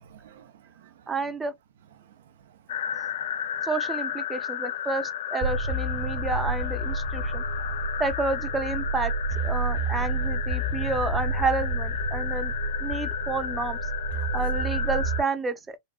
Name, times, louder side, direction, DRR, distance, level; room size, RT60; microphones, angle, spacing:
voice 1, 0.0-1.1 2.0-3.6, right 9 dB, 80° right, 0.6 m, -55 dB
voice 2, 1.1-1.5 3.6-9.1 9.4-12.5 12.8-13.8 14.1-15.8, right 4 dB, 15° right, 0.6 m, -30 dB
sound 1, 2.7-15.2, left 9 dB, 80° left, 0.4 m, -33 dB
sound 2, 5.4-15.2, right 2 dB, 60° right, 1.2 m, -30 dB
3.7 x 2.0 x 2.3 m
hypercardioid pair, 110°, 0 cm